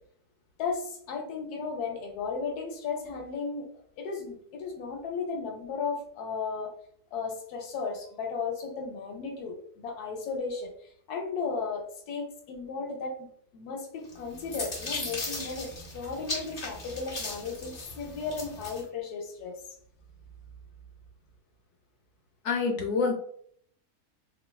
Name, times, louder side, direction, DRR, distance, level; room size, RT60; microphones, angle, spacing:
voice 1, 0.6-3.7 4.0-6.7 7.1-10.7 11.1-13.3 13.5-19.5, left 5 dB, 85° left, 2 dB, 1.1 m, -35 dB
sound 1, 14.1-18.8, left 2 dB, 40° left, 0.5 m, -37 dB
voice 2, 22.4-23.1, left 4 dB, 60° left, 1 dB, 1.0 m, -26 dB
4.0 x 2.1 x 2.2 m, 0.63 s
omnidirectional pair, 1.6 m